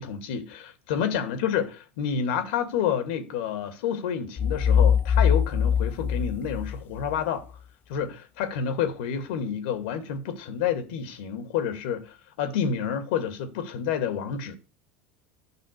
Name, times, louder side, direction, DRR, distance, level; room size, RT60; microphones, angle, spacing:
voice 1, 0.0-7.4 7.9-14.6, left 8 dB, 70° left, 2.2 m, -29 dB
sound 1, 4.4-7.2, left 7 dB, 35° left, 0.7 m, -22 dB
11.0 x 5.9 x 6.7 m
hypercardioid pair, 80°, 6 cm